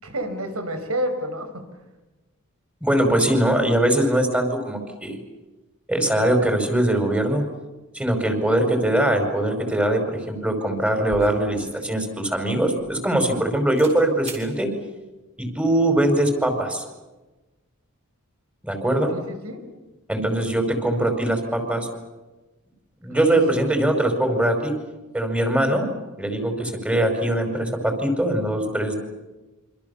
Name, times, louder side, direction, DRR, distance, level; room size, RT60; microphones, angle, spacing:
voice 1, 0.0-1.6 19.1-19.6 23.1-23.8, equal, 80° right, 7 dB, 5.5 m, -30 dB
voice 2, 2.8-5.2 5.9-7.4 7.9-14.7 15.4-16.8 18.6-19.1 20.1-21.9 23.0-24.7 25.1-25.9 26.2-29.0, right 1 dB, 5° right, 5 dB, 5.3 m, -22 dB
sound 1, 11.1-13.4 13.8-14.0 14.2-14.5, right 2 dB, 30° right, 6.9 m, -41 dB
27.5 x 26.5 x 7.1 m, 1.1 s
head